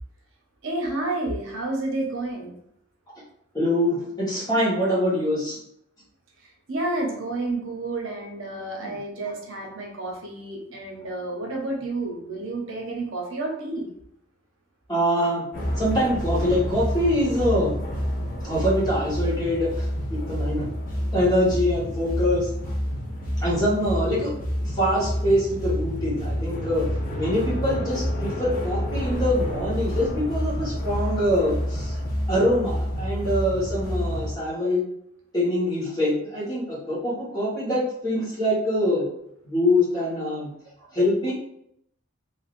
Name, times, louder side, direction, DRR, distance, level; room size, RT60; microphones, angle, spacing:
voice 1, 0.6-2.5 6.7-13.9, right 2 dB, 75° right, 0 dB, 0.7 m, -30 dB
voice 2, 3.5-5.6 8.8-8.9 14.9-15.4 15.8-17.8 18.4-19.8 20.1-20.7 21.0-22.7 23.4-24.3 24.6-26.8 27.1-31.9 32.3-34.8 35.3-39.0 39.4-40.5 40.9-41.3, left 1 dB, 20° left, -8 dB, 1.2 m, -24 dB
sound 1, 15.5-34.3, equal, 45° left, 0.7 m, -28 dB
3.3 x 2.6 x 2.5 m, 0.75 s
head